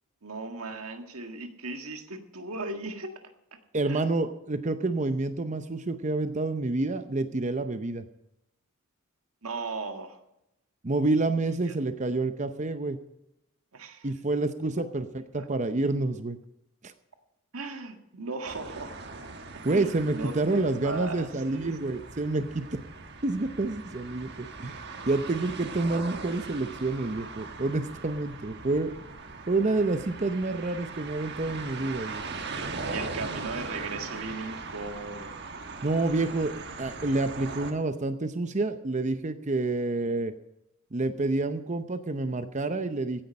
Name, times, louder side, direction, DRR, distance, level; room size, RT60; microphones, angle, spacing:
voice 1, 0.2-3.1 3.9-4.0 9.4-10.2 11.6-11.8 13.7-14.1 14.8-14.9 15.4-15.5 17.5-18.9 19.5-21.8 32.5-35.3, right 3 dB, 75° right, 6 dB, 1.8 m, -37 dB
voice 2, 3.7-8.0 10.8-13.0 14.0-15.1 15.3-16.4 16.8-16.9 19.6-22.8 23.2-24.8 25.1-28.9 29.5-32.2 35.8-40.3 40.9-43.2, right 2 dB, 35° right, 10 dB, 0.7 m, -28 dB
sound 1, 18.5-37.7, right 4 dB, 50° right, 1.4 m, -40 dB
15.5 x 10.0 x 5.4 m, 0.85 s
head